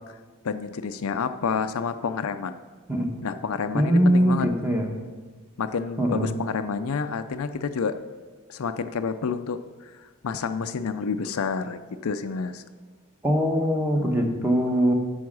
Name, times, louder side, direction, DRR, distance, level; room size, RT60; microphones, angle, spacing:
voice 1, 0.4-2.6 3.2-4.5 5.6-8.0 8.5-9.6 9.9-12.6, left 5 dB, 75° left, 10 dB, 0.5 m, -29 dB
voice 2, 3.7-4.9 6.0-6.3 13.2-14.9, equal, 10° right, 2 dB, 1.1 m, -22 dB
9.4 x 6.3 x 6.2 m, 1.5 s
head